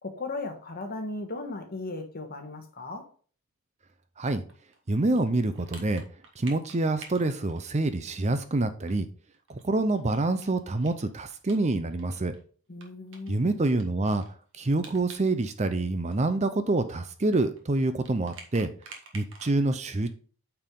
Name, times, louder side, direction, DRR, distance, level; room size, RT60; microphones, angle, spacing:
voice 1, 0.0-3.1 12.7-13.5, left 2 dB, 45° left, 1.4 m, -36 dB
sound 1, 4.5-8.3 8.6-8.7 8.9-9.0 9.3-12.0 12.3-12.4 12.8-15.3 15.6-19.6, right 4 dB, 55° right, 1.6 m, -49 dB
voice 2, 4.9-6.0 6.4-9.1 9.5-12.3 13.3-14.2 14.6-18.7 19.1-20.1, right 2 dB, 30° right, 0.6 m, -26 dB
8.8 x 4.7 x 3.8 m
head